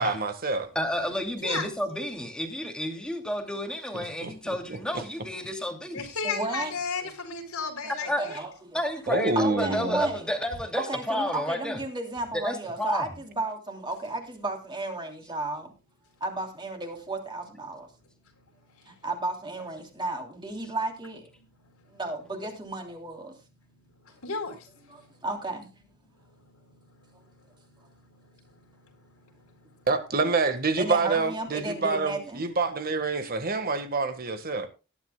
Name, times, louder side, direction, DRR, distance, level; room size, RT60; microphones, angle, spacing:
voice 1, 0.0-0.7 3.9-5.0 9.1-10.1 29.9-34.7, right 3 dB, 45° right, 1.4 m, -27 dB
voice 2, 0.7-6.0 8.1-8.2 8.7-11.8 12.3-13.0, equal, 5° left, 2.4 m, -31 dB
voice 3, 1.3-1.7 5.9-8.4 18.3-19.0 21.6-22.0 23.8-25.2 26.1-29.9 33.2-33.3, left 4 dB, 90° left, 3.9 m, -37 dB
voice 4, 6.2-6.7 7.8-8.5 9.3-10.2 10.7-15.7 16.2-17.9 19.0-21.2 21.9-23.3 24.9-25.7 30.8-32.4, right 2 dB, 20° right, 3.0 m, -33 dB
19.0 x 11.0 x 2.2 m
head